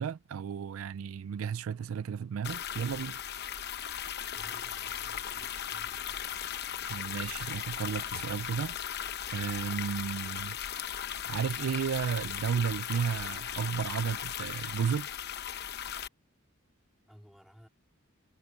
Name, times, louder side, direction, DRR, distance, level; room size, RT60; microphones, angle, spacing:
voice 1, 0.0-3.2 6.9-8.8 9.3-10.6 11.3-15.1, right 7 dB, 70° right, 0.3 m, -33 dB
sound 1, 2.4-16.1, left 9 dB, 50° left, 0.9 m, -37 dB
voice 2, 4.3-6.2 17.1-17.7, equal, ahead, 3.7 m, -56 dB
head